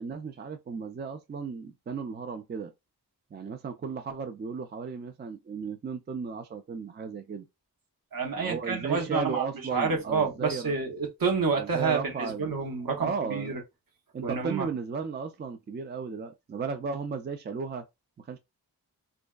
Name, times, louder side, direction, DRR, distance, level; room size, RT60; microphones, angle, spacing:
voice 1, 0.0-2.7 3.3-7.5 8.4-10.8 11.6-12.6 13.0-13.5 14.1-17.9 18.2-18.4, right 5 dB, 30° right, 0.4 m, -35 dB
voice 2, 8.1-13.6 14.2-14.7, right 5 dB, 60° right, 1.0 m, -29 dB
2.5 x 2.2 x 2.2 m
cardioid pair, 45°, 38 cm